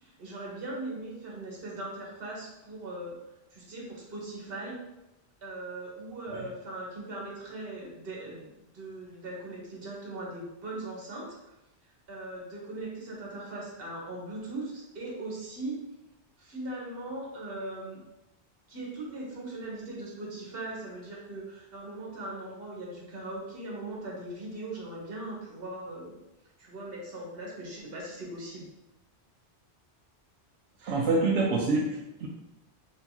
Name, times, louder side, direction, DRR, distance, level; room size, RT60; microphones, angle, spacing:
voice 1, 0.0-3.2 3.5-4.8 5.4-8.5 8.7-11.3 12.1-15.8 16.4-18.0 18.7-26.1 26.6-28.7, right 2 dB, 60° right, -3 dB, 1.3 m, -39 dB
voice 2, 30.8-32.3, right 3 dB, 85° right, -1 dB, 0.9 m, -26 dB
4.5 x 3.0 x 2.7 m, 0.93 s
omnidirectional pair, 1.1 m